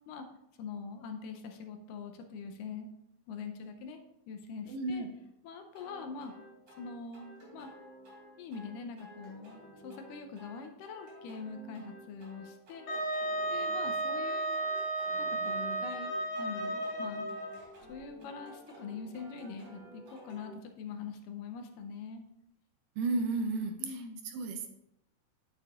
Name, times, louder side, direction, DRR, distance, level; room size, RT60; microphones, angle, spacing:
voice 1, 0.6-2.9 3.3-4.0 4.3-5.1 5.4-6.4 6.8-7.3 7.5-7.7 8.4-13.0 13.5-14.5 15.2-17.3 17.9-22.2 23.8-24.2, left 5 dB, 80° left, 5 dB, 2.2 m, -43 dB
voice 2, 4.7-5.1 23.0-23.8 24.3-24.7, right 3 dB, 75° right, 5 dB, 2.2 m, -32 dB
sound 1, 5.7-20.5, equal, 50° right, 4.4 m, -53 dB
Wind instrument woodwind instrument, 12.9-17.6, right 2 dB, 60° left, 2.7 m, -33 dB
9.3 x 8.8 x 2.5 m, 0.84 s
omnidirectional pair, 4.1 m